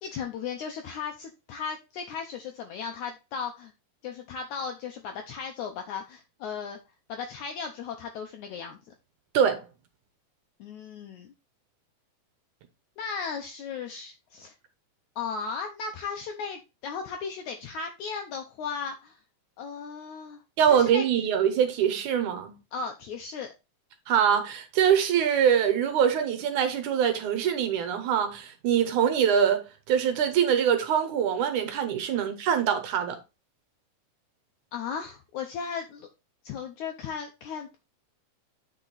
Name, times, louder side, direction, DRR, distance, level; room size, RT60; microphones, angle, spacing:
voice 1, 0.0-3.7 4.0-6.8 7.1-8.8 10.6-11.3 13.0-14.5 15.2-19.2 19.6-20.4 20.7-21.0 22.7-23.5 32.1-32.3 34.7-36.1 36.4-37.8, left 6 dB, 75° left, 1.9 m, -36 dB
voice 2, 9.3-9.7 20.6-22.6 24.1-33.2, right 8 dB, 70° right, 2.3 m, -24 dB
8.4 x 5.1 x 3.9 m
omnidirectional pair, 4.0 m